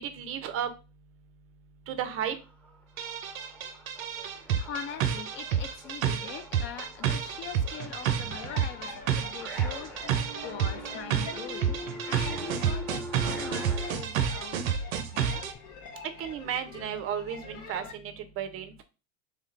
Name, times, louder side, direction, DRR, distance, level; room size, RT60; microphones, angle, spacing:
voice 1, 0.0-0.7 1.9-2.4 16.2-18.8, right 9 dB, 35° right, 0.6 m, -33 dB
sound 1, 2.4-13.9, equal, 5° left, 1.2 m, -43 dB
sound 2, 3.0-15.5, right 8 dB, 90° right, 0.6 m, -30 dB
voice 2, 4.2-9.9 10.4-11.8 12.1-14.6 15.1-15.5, left 8 dB, 30° left, 0.4 m, -42 dB
sound 3, 8.3-17.9, left 4 dB, 45° left, 1.0 m, -46 dB
3.3 x 2.3 x 3.1 m
hypercardioid pair, 95°, 40 cm